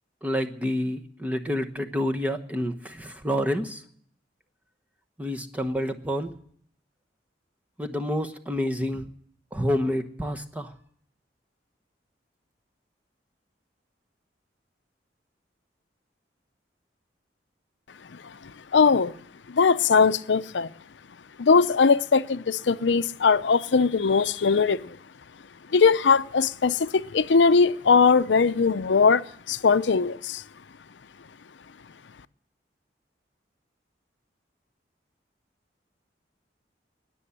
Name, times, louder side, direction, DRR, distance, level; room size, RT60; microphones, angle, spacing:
voice 1, 0.2-3.8 5.2-6.3 7.8-9.1 9.5-10.7, equal, 10° right, 1.1 m, -28 dB
voice 2, 18.1-19.1 19.5-20.7 21.4-25.0 25.7-30.4, left 5 dB, 90° left, 0.6 m, -21 dB
20.0 x 7.0 x 9.9 m
head